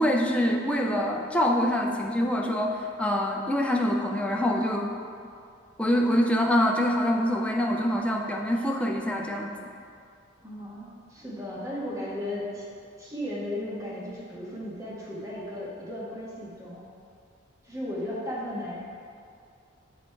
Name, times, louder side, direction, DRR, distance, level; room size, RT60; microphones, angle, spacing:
voice 1, 0.0-5.0 5.8-9.7, equal, 5° left, 0 dB, 0.4 m, -25 dB
voice 2, 10.4-12.6 13.0-16.8 17.6-18.8, left 1 dB, 15° right, -7 dB, 1.5 m, -35 dB
9.2 x 3.1 x 4.5 m, 2.4 s
head